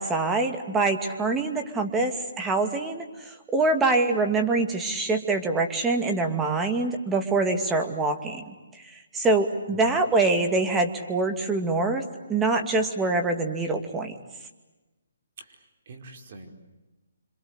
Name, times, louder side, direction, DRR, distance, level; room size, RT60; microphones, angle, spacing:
voice 1, 0.0-8.5 8.9-12.0 12.3-14.2, right 3 dB, 10° right, 5 dB, 2.5 m, -25 dB
voice 2, 15.4-16.5, right 3 dB, 45° right, 4 dB, 5.0 m, -46 dB
27.0 x 26.5 x 8.3 m, 1.1 s
hypercardioid pair, 155°, 0 cm